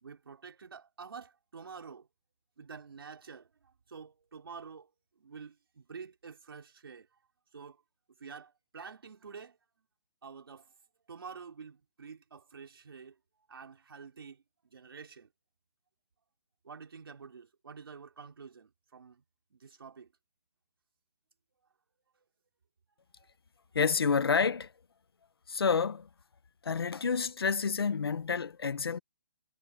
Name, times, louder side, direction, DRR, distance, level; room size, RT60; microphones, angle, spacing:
voice 1, 0.0-2.1 2.6-4.9 5.2-7.1 7.5-7.8 8.2-9.6 10.2-10.7 11.1-13.2 13.5-14.4 14.7-15.3 16.6-19.2 19.5-20.1 22.2-22.3 23.2-23.3, right 5 dB, 75° right, 3.6 m, -48 dB
voice 2, 23.7-24.7 25.5-26.1 26.6-29.0, left 5 dB, 85° left, 1.3 m, -29 dB
hypercardioid pair, 165°, 12 cm